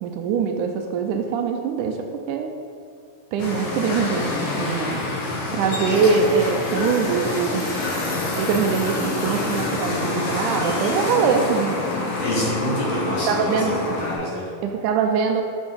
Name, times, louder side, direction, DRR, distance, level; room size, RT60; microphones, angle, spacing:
voice 1, 0.0-2.5 3.3-5.0 5.5-7.6 8.3-11.8 13.3-13.8 14.6-15.4, right 6 dB, 80° right, 5 dB, 2.0 m, -23 dB
sound 1, 3.4-14.2, left 2 dB, 75° left, 1.1 m, -26 dB
voice 2, 12.2-14.4, equal, 60° left, -6 dB, 2.0 m, -27 dB
6.3 x 6.1 x 3.6 m, 2.2 s
omnidirectional pair, 3.7 m